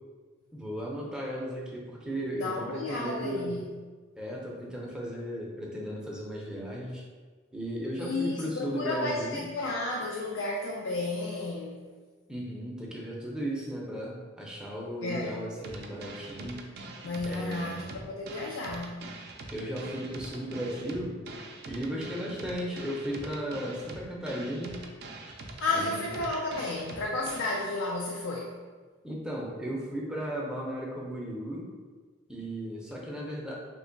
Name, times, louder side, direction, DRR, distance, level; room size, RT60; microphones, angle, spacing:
voice 1, 0.5-3.5 4.2-7.0 7.5-9.5 12.3-16.7 17.2-17.9 19.5-21.2 21.6-24.8 25.7-26.1 29.0-31.7 32.3-33.5, equal, 5° right, -4 dB, 0.5 m, -35 dB
voice 2, 2.3-3.7 8.0-11.8 15.0-15.3 17.0-19.1 25.6-28.6, left 2 dB, 60° left, -1 dB, 0.4 m, -32 dB
sound 1, 15.6-27.6, right 3 dB, 55° right, 0.4 m, -44 dB
3.0 x 2.2 x 3.7 m, 1.4 s
head